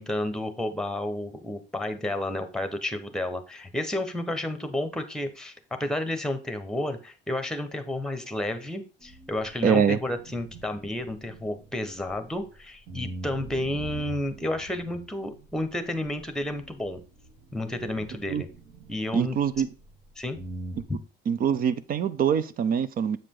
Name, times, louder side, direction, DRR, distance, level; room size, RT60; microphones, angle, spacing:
voice 1, 0.0-5.5 5.8-17.0 17.5-18.5 18.9-19.7 20.2-20.4, left 1 dB, 5° left, 1.0 m, -31 dB
sound 1, 9.0-12.5 12.9-20.1 20.3-20.8, right 1 dB, 65° right, 2.9 m, -43 dB
voice 2, 9.6-10.0 18.3-18.4 19.1-19.7 21.3-23.2, right 7 dB, 45° right, 0.6 m, -24 dB
7.8 x 5.0 x 3.7 m
cardioid pair, 150°, 20 cm